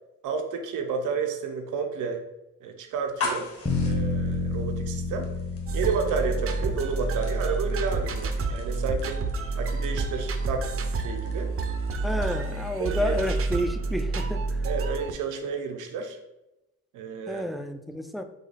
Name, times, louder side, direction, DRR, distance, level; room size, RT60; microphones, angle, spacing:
voice 1, 0.2-2.2 2.6-3.5 3.8-5.3 5.7-9.2 9.6-11.5 12.1-12.2 12.8-13.1 14.6-16.2 16.9-17.4, right 5 dB, 80° right, 5 dB, 0.8 m, -31 dB
sound 1, 3.0-12.7, left 4 dB, 50° left, 1.3 m, -41 dB
sound 2, 3.7-7.8, left 3 dB, 20° left, 0.8 m, -30 dB
sound 3, 5.7-15.1, right 3 dB, 45° right, 0.6 m, -29 dB
voice 2, 12.0-14.6 17.3-18.2, equal, ahead, 7 dB, 0.3 m, -30 dB
5.1 x 2.3 x 4.0 m, 0.95 s
cardioid pair, 90°, 30 cm